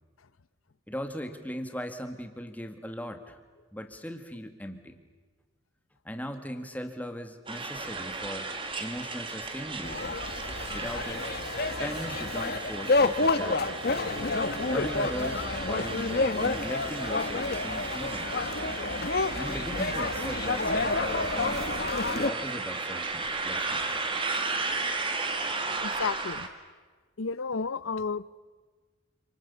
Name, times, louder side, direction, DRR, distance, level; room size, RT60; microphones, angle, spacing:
voice 1, 0.9-3.4 3.7-5.0 6.0-10.2 10.7-11.3 11.8-13.7 14.7-18.5 19.4-21.6 22.1-24.0, equal, 10° left, 7 dB, 2.0 m, -38 dB
sound 1, 7.5-26.5, right 3 dB, 25° right, 2.2 m, -34 dB
sound 2, 9.8-22.3, left 3 dB, 50° left, 1.2 m, -29 dB
voice 2, 25.8-26.5 27.2-28.2, left 4 dB, 85° left, 18 dB, 0.8 m, -32 dB
28.5 x 27.5 x 7.1 m, 1.4 s
head